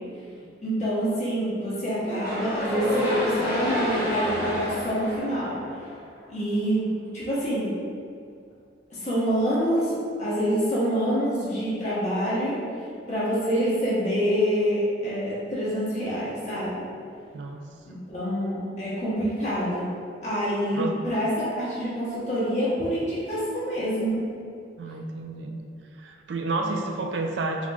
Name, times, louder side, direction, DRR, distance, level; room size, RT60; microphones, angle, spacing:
voice 1, 0.6-5.6 6.3-6.9 7.1-7.7 9.0-9.9 10.2-12.6 13.1-16.8 17.9-19.9 20.2-24.2, equal, 40° left, -9 dB, 1.0 m, -26 dB
sound 1, 2.0-6.2, equal, 15° right, 0.8 m, -30 dB
voice 2, 17.3-17.7 19.4-19.5 20.7-21.0 24.8-25.6 25.9-27.7, right 2 dB, 70° right, 3 dB, 0.3 m, -30 dB
3.7 x 2.9 x 2.3 m, 2.3 s
head